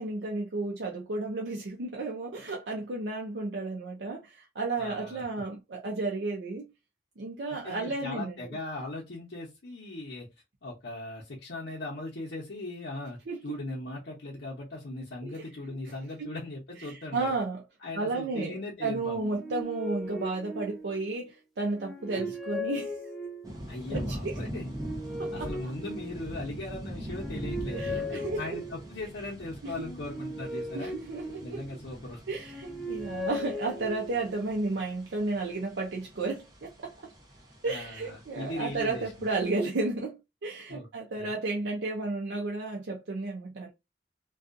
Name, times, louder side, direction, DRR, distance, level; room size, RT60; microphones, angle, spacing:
voice 1, 0.0-6.7 7.2-8.4 13.3-13.4 15.2-15.4 15.8-15.9 16.2-16.3 16.8-17.6 17.9-22.9 23.9-24.4 25.2-25.7 27.7-28.6 29.6-29.9 30.7-31.6 32.3-37.1 37.6-43.7, right 3 dB, 85° right, 0.6 m, -33 dB
voice 2, 4.8-5.2 7.5-10.3 10.6-13.2 13.4-17.4 17.8-19.2 22.1-22.3 23.7-24.7 25.3-30.9 31.4-32.2 37.6-39.3 40.7-40.9 41.1-41.3, left 2 dB, 85° left, 0.8 m, -39 dB
sound 1, 19.1-21.2 21.7-23.7 24.4-26.5 27.0-29.0 29.7-31.9 32.3-34.4, left 1 dB, ahead, 0.4 m, -38 dB
sound 2, 23.4-39.5, equal, 20° right, 0.7 m, -42 dB
2.6 x 2.4 x 2.4 m
head